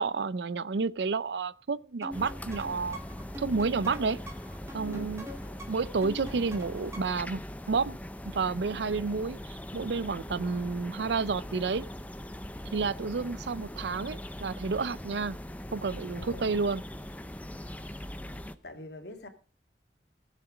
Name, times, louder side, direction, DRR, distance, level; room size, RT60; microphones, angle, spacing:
voice 1, 0.0-3.0 3.4-4.2 4.7-5.3 5.7-7.4 7.7-8.0 8.2-11.8 12.7-15.4 15.7-16.8, right 4 dB, 75° right, 0.5 m, -30 dB
sound 1, 2.0-7.3, equal, 15° right, 2.1 m, -45 dB
sound 2, 2.1-18.5, left 1 dB, 10° left, 0.6 m, -41 dB
voice 2, 4.9-5.2 16.1-16.6 18.6-19.3, left 1 dB, 70° left, 2.1 m, -43 dB
17.0 x 7.5 x 5.0 m
head